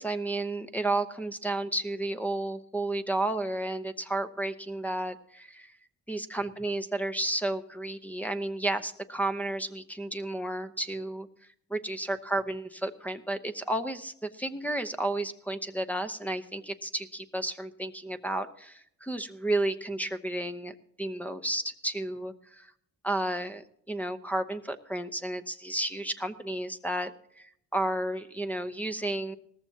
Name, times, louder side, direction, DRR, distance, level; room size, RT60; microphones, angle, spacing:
voice 1, 0.0-5.7 6.1-11.3 11.7-22.7 23.0-27.1 27.4-29.4, right 1 dB, 5° left, 4 dB, 0.8 m, -32 dB
18.5 x 14.5 x 2.9 m, 0.68 s
cardioid pair, 90°, 30 cm